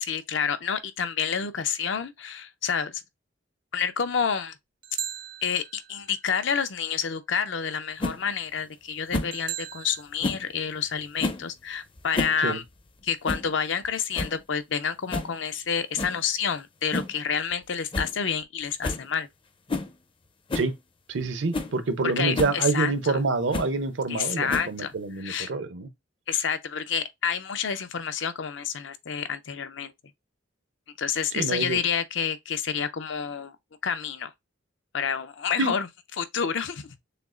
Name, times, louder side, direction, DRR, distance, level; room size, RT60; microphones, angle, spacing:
voice 1, 0.0-3.0 3.7-4.5 5.4-12.6 13.0-19.3 22.2-23.2 24.1-24.9 25.2-25.5 26.3-29.9 31.0-33.6 33.8-34.3 34.9-35.9 36.2-37.0, left 7 dB, 70° left, 0.6 m, -29 dB
sound 1, 4.8-6.2 9.3-10.0, right 10 dB, 45° right, 0.4 m, -37 dB
sound 2, 8.0-8.2 9.1-9.4 10.2-10.5 11.2-11.5 12.0-12.4 12.7-12.8 13.3-13.5 13.8-13.9 14.1-14.4 15.1-15.3 16.0-16.2 16.9-17.2 17.5-17.6 17.9-18.1 18.4-18.5 18.8-19.1 19.7-19.9 20.5-20.7 21.2-21.3 21.5-21.7 22.3-22.6 23.5-23.7 24.5-24.9, left 2 dB, 30° left, 0.5 m, -30 dB
voice 2, 21.1-25.9 31.3-31.8 35.6-35.7, right 3 dB, 75° right, 0.7 m, -27 dB
6.6 x 2.4 x 2.4 m
head